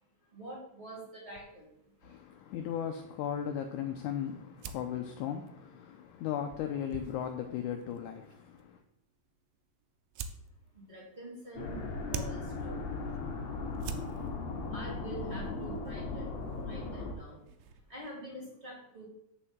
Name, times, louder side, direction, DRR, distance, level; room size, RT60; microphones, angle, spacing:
voice 1, 0.3-2.2 10.7-12.9 14.7-17.5 17.9-19.1, right 1 dB, 20° right, 2.9 m, -46 dB
sound 1, 1.3-18.2, right 6 dB, 80° right, 2.1 m, -50 dB
voice 2, 2.0-8.8, left 9 dB, 80° left, 1.8 m, -37 dB
sound 2, 11.6-17.1, left 3 dB, 60° left, 2.3 m, -37 dB
6.9 x 5.4 x 7.3 m
omnidirectional pair, 4.0 m